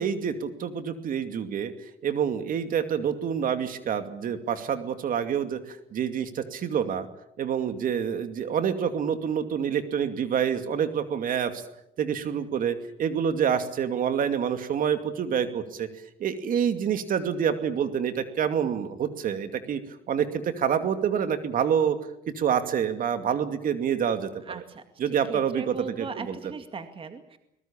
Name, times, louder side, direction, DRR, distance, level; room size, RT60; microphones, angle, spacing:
voice 1, 0.0-1.7 2.0-7.1 7.4-11.6 12.0-15.9 16.2-19.8 20.1-22.0 22.4-24.6 25.0-26.4, right 8 dB, 55° right, 9 dB, 2.5 m, -27 dB
voice 2, 24.5-24.8 25.1-27.4, right 5 dB, 30° right, 8 dB, 2.2 m, -38 dB
23.0 x 20.5 x 8.8 m, 0.79 s
cardioid pair, 110°, 17 cm